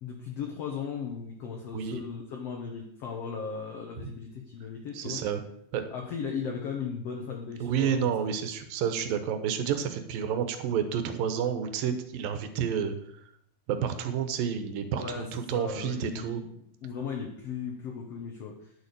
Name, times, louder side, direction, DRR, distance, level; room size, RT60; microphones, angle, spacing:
voice 1, 0.0-5.2 5.9-8.3 15.0-18.7, left 6 dB, 55° left, 1 dB, 1.9 m, -37 dB
voice 2, 4.9-5.4 5.7-5.9 7.6-13.0 13.7-16.4, right 8 dB, 85° right, 9 dB, 2.9 m, -30 dB
10.5 x 7.3 x 6.8 m, 0.69 s
omnidirectional pair, 3.9 m